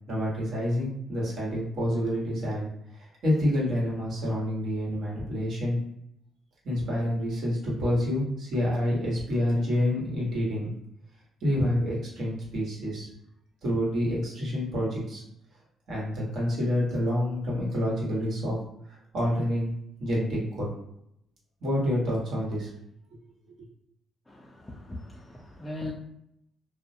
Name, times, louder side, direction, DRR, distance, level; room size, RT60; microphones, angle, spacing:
voice 1, 0.1-5.8 6.6-10.7 11.4-13.1 13.6-15.2 15.9-18.6 18.9-19.7 20.0-20.7 21.6-22.7 23.1-23.2 23.5-23.6, left 1 dB, 70° right, -5 dB, 1.2 m, -28 dB
voice 2, 24.3-25.9, left 1 dB, 15° left, -4 dB, 0.4 m, -39 dB
2.3 x 2.1 x 2.7 m, 0.77 s
cardioid pair, 90°, 0 cm